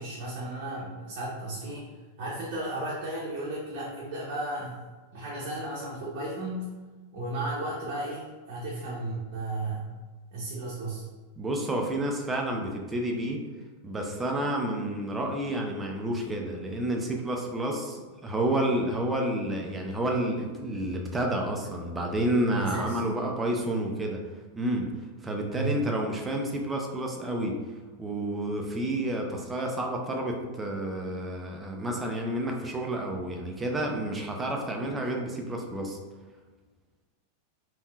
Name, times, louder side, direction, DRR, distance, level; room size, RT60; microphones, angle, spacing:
voice 1, 0.0-1.9 2.2-4.8 5.1-6.7 7.1-9.9 10.3-11.0 22.5-23.0 25.5-25.8, right 2 dB, 45° right, -7 dB, 0.8 m, -34 dB
voice 2, 11.4-13.4 13.8-24.2 24.6-24.9 25.2-27.6 28.0-36.0, right 1 dB, 15° right, 1 dB, 0.5 m, -30 dB
3.4 x 2.5 x 2.3 m, 1.4 s
figure-of-eight pair, 90°, 0 cm